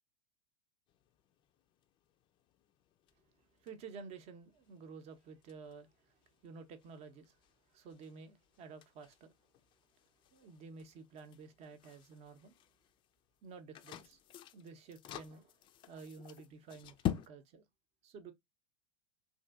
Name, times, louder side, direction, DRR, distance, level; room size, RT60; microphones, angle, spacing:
sound 1, 0.9-17.3, left 11 dB, 30° left, 0.3 m, -48 dB
voice 1, 3.6-7.4 7.7-9.3 10.3-12.5 13.4-14.2 14.5-15.6 15.9-17.7 18.0-18.3, right 5 dB, 40° right, 0.7 m, -52 dB
2.7 x 2.6 x 2.3 m
hypercardioid pair, 100°, 16 cm